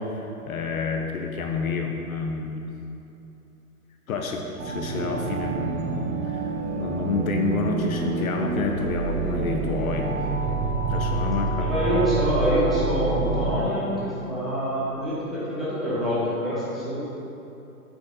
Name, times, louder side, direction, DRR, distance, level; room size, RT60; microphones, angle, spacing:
voice 1, 0.0-2.7 4.1-6.4 6.8-10.1 10.9-11.7, left 4 dB, 65° left, 3 dB, 0.9 m, -29 dB
sound 1, 4.6-13.6, right 3 dB, 50° right, 1.3 m, -27 dB
voice 2, 11.6-17.0, equal, ahead, -11 dB, 1.7 m, -26 dB
8.3 x 6.3 x 4.1 m, 2.9 s
hypercardioid pair, 150°, 46 cm